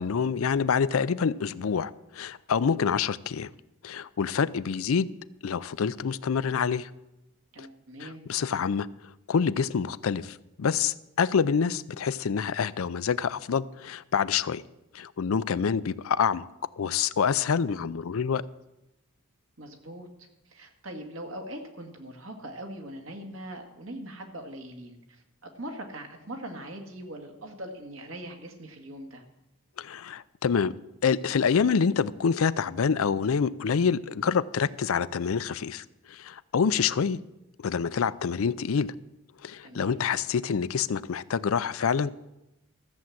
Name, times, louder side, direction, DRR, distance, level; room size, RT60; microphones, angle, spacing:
voice 1, 0.0-3.5 3.8-5.1 5.4-6.9 7.6-7.7 8.0-8.9 9.3-14.6 14.9-16.5 16.8-18.4 29.8-30.8 31.0-37.2 37.6-38.9 39.4-42.1, left 6 dB, 80° left, 16 dB, 0.5 m, -27 dB
voice 2, 7.5-8.2 19.6-29.2 39.6-40.1, right 1 dB, 65° right, 3 dB, 1.9 m, -41 dB
14.0 x 7.2 x 7.7 m, 0.91 s
head